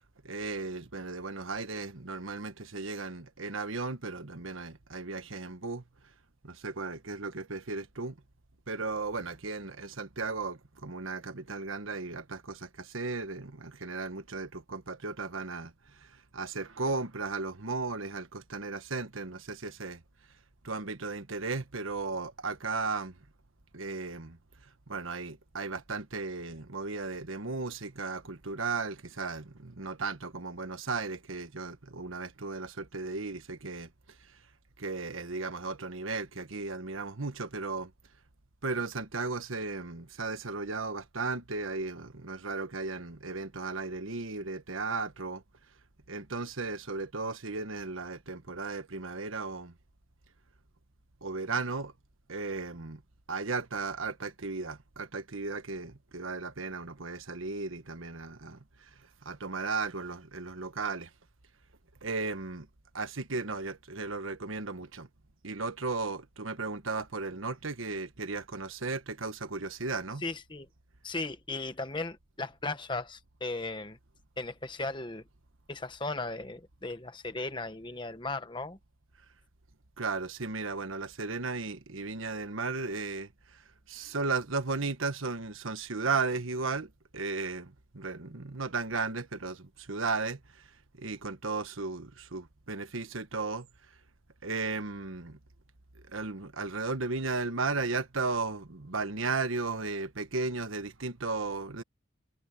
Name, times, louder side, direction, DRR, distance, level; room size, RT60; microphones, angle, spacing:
voice 1, 0.2-5.8 6.4-8.2 8.7-20.0 20.6-23.1 23.7-24.4 24.9-33.9 34.8-37.9 38.6-45.4 46.1-49.7 51.2-51.9 52.3-53.0 53.3-58.9 59.2-61.1 62.0-62.7 62.9-65.1 65.4-70.2 80.0-83.6 83.9-90.7 91.0-93.7 94.4-95.4 96.1-101.8, right 3 dB, 85° right, 1.4 m, -35 dB
voice 2, 70.2-70.7 71.0-74.0 74.4-75.2 75.7-78.8, left 3 dB, 25° left, 1.3 m, -36 dB
head